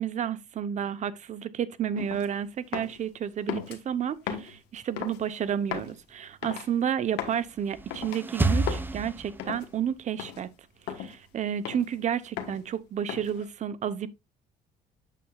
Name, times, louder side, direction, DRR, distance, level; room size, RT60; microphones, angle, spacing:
voice 1, 0.0-10.5 10.9-14.1, right 9 dB, 45° right, 0.7 m, -31 dB
sound 1, 1.9-2.3 2.7-3.0 3.5-3.8 4.3-4.6 5.0-5.2 5.7-5.9 6.4-6.7 7.2-7.4 7.9-8.2 8.7-8.9 9.4-9.7 10.2-10.4 10.9-11.1 11.6-12.0 12.4-12.6 13.1-13.4, left 8 dB, 90° left, 1.3 m, -36 dB
sound 2, 7.4-9.8, right 2 dB, 10° right, 0.6 m, -29 dB
8.4 x 6.8 x 2.3 m
cardioid pair, 110°, 17 cm